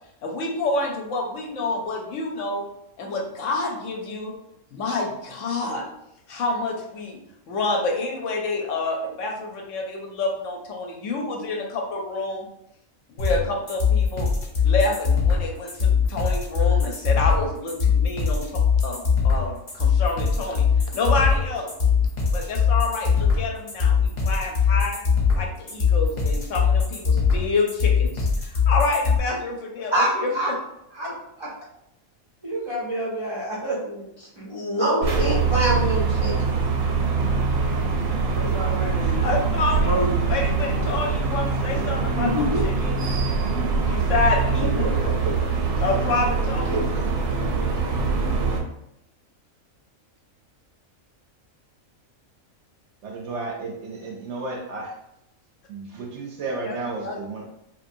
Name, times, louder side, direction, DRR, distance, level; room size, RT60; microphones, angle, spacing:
voice 1, 0.2-2.7 3.0-4.3 4.7-5.8 6.3-7.2 7.5-12.5 13.1-14.3 14.6-20.6 20.9-21.7 22.3-25.0 25.3-30.5 39.0-39.9 40.3-43.0 43.8-44.9 45.8-46.7 56.6-56.7 57.0-57.2, left 3 dB, 70° left, 1 dB, 0.9 m, -28 dB
sound 1, 13.2-29.2, left 6 dB, 40° left, 0.8 m, -21 dB
voice 2, 29.9-30.5 30.9-31.1 31.4-31.5 32.4-36.5 38.3-39.3 39.9-40.1 42.2-42.6 44.6-45.1 46.7-46.8, right 1 dB, 45° right, -7 dB, 0.3 m, -26 dB
sound 2, 35.0-48.6, right 4 dB, 90° right, 1.1 m, -23 dB
voice 3, 53.0-55.0 55.7-57.5, right 3 dB, 65° right, 0 dB, 0.8 m, -33 dB
3.0 x 2.5 x 2.6 m, 0.81 s
omnidirectional pair, 1.5 m